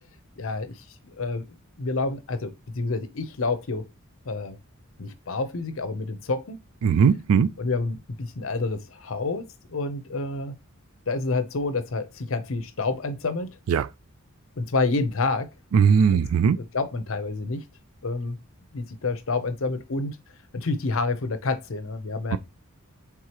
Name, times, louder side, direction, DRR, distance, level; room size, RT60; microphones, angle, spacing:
voice 1, 0.4-0.7 1.2-1.5 1.8-3.9 4.3-4.6 5.0-6.6 7.6-10.5 11.1-13.5 14.6-15.5 16.1-16.2 16.6-17.6 18.0-18.4 18.7-20.2 20.5-22.4, left 3 dB, 70° left, 0.7 m, -28 dB
voice 2, 6.8-7.5 13.7-13.9 15.7-16.6 22.3-22.4, right 6 dB, 85° right, 0.4 m, -19 dB
4.6 x 3.6 x 2.9 m
head